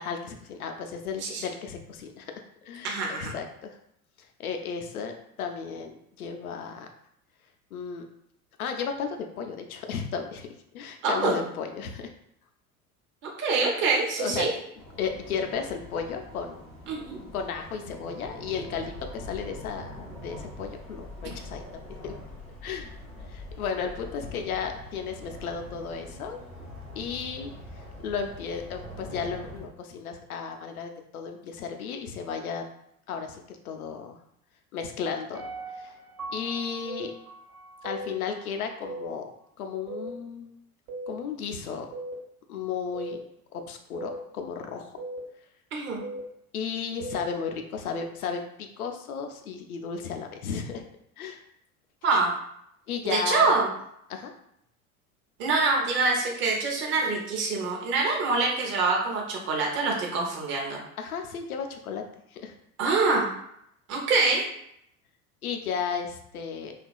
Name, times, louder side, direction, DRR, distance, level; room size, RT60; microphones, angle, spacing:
voice 1, 0.0-2.3 2.7-2.9 3.2-3.8 4.4-6.9 7.7-8.0 8.6-10.5 10.7-12.1 14.2-14.5 15.0-16.6 17.3-22.1 22.6-22.9 23.3-26.4 27.0-27.5 28.0-32.6 33.1-34.2 34.7-35.4 35.8-35.9 36.3-37.1 37.8-39.3 39.6-40.6 41.1-41.9 42.5-43.2 43.5-45.0 46.5-48.4 48.8-50.8 51.2-51.4 52.9-53.5 54.1-54.3 61.0-62.0 62.3-62.5 65.4-66.7, left 6 dB, 75° left, 5 dB, 0.5 m, -34 dB
voice 2, 2.8-3.3 11.0-11.4 13.2-14.5 16.9-17.2 45.7-46.0 52.0-52.3 53.0-53.7 55.4-60.8 62.8-63.3 63.9-64.4, right 3 dB, 25° right, -1 dB, 0.7 m, -25 dB
sound 1, 14.7-29.7, left 1 dB, ahead, 0.4 m, -43 dB
Piano, 35.3-38.4 38.9-39.0, right 2 dB, 85° right, 0.8 m, -42 dB
sound 2, 36.8-37.0 37.8-38.1 38.9-39.1 39.9-40.1 40.9-41.1 41.9-42.1 42.9-43.1 43.9-44.2 45.0-45.2 46.0-46.2 47.0-47.2, right 2 dB, 65° right, 1.1 m, -36 dB
2.8 x 2.4 x 2.2 m, 0.74 s
figure-of-eight pair, 75°, 44 cm